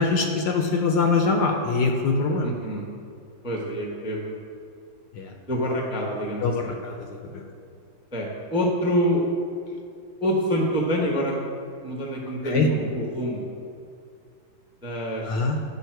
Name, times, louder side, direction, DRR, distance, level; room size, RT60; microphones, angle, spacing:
voice 1, 0.0-2.5 5.1-5.3 6.4-7.0 7.3-7.4 12.4-12.7 15.2-15.6, left 4 dB, 70° left, 3 dB, 1.2 m, -23 dB
voice 2, 2.4-2.8 3.4-4.4 5.5-6.8 8.1-9.2 10.2-11.4 11.8-13.5 14.8-15.4, equal, 5° right, -1 dB, 0.6 m, -26 dB
9.7 x 5.4 x 4.6 m, 2.4 s
omnidirectional pair, 2.1 m